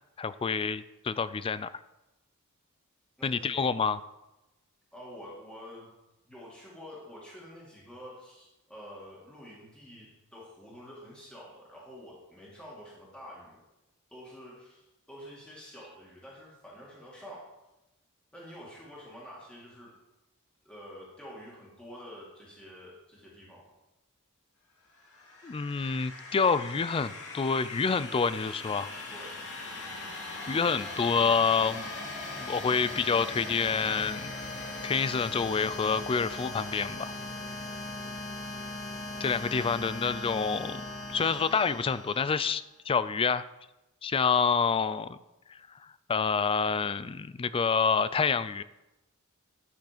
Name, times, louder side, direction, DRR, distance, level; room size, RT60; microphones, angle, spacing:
voice 1, 0.2-1.7 3.2-4.0 25.4-28.9 30.5-31.9 32.3-34.3 34.8-37.1 39.2-40.8 41.1-43.5 44.0-45.2 45.5-45.6 46.1-48.6, left 5 dB, 25° left, 15 dB, 0.3 m, -28 dB
voice 2, 3.2-3.7 4.9-5.9 6.2-13.6 14.1-17.5 18.3-19.9 20.6-23.6 29.1-29.5, equal, 5° left, -6 dB, 2.1 m, -48 dB
sound 1, 25.0-42.6, left 2 dB, 65° left, 2.4 m, -40 dB
11.0 x 5.9 x 5.1 m, 0.98 s
head